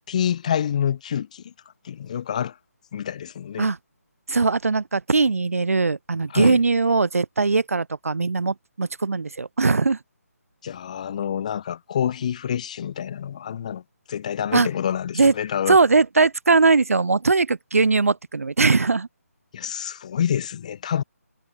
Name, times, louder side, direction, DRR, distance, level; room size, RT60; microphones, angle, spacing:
voice 1, 0.1-1.5 1.8-2.5 2.9-3.7 6.3-6.6 10.6-13.8 14.1-15.8 19.5-21.0, left 9 dB, 25° left, 0.5 m, -27 dB
voice 2, 4.3-10.0 14.5-14.7 15.2-15.3 15.7-19.1, right 4 dB, 65° right, 0.4 m, -20 dB
figure-of-eight pair, 150°, 8 cm